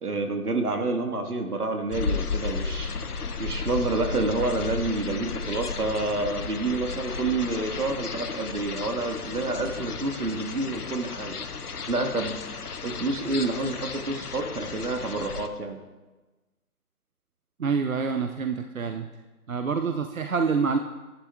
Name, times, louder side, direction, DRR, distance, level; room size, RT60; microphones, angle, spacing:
voice 1, 0.0-2.9 3.4-11.4 11.9-15.8, right 2 dB, 80° right, 4 dB, 1.6 m, -28 dB
sound 1, 1.9-15.5, left 5 dB, 80° left, 0.9 m, -34 dB
voice 2, 17.6-19.1 19.5-20.8, right 5 dB, 65° right, 6 dB, 0.7 m, -26 dB
14.5 x 11.0 x 2.3 m, 1.2 s
figure-of-eight pair, 170°, 45 cm